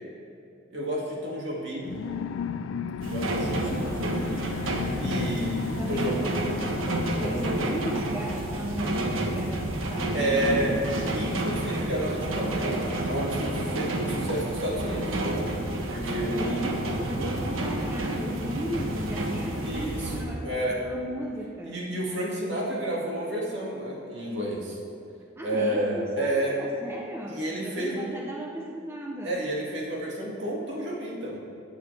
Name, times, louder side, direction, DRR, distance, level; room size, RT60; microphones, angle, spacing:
voice 1, 0.7-2.0 2.9-4.5 5.0-6.2 7.2-7.5 10.1-10.8 11.1-15.5 15.9-16.7 17.2-17.3 19.6-20.8 21.6-24.8 25.4-26.5 27.3-28.1 29.2-31.4, right 1 dB, 60° right, -4 dB, 2.4 m, -31 dB
sound 1, 1.8-10.0, left 6 dB, 85° left, 0.4 m, -36 dB
voice 2, 3.0-4.3 5.8-10.7 16.4-21.8 25.4-29.4, equal, 10° right, -1 dB, 0.7 m, -36 dB
sound 2, 3.0-20.2, right 1 dB, 90° right, 1.2 m, -30 dB
16.0 x 8.8 x 3.4 m, 2.7 s
head